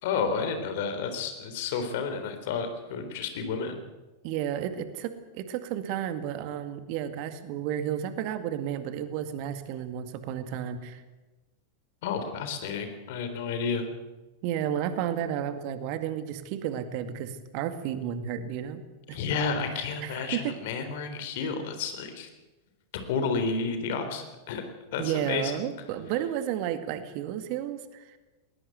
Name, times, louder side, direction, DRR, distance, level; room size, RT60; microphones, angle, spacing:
voice 1, 0.0-3.8 12.0-13.9 19.1-22.3 22.9-24.6 24.9-25.5, left 5 dB, 50° left, 8 dB, 3.7 m, -31 dB
voice 2, 4.2-11.0 14.4-18.8 19.1-19.2 19.7-20.6 25.0-28.2, right 10 dB, 45° right, 10 dB, 2.0 m, -32 dB
20.0 x 20.0 x 8.1 m, 1.2 s
figure-of-eight pair, 90°, 0 cm